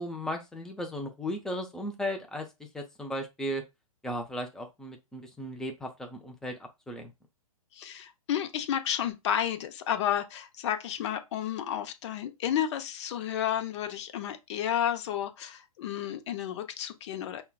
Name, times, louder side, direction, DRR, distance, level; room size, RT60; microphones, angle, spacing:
voice 1, 0.0-3.6 4.0-7.1, equal, 5° left, 0.5 m, -36 dB
voice 2, 7.7-17.4, left 10 dB, 50° left, 0.7 m, -31 dB
5.5 x 2.2 x 2.3 m
hypercardioid pair, 125°, 19 cm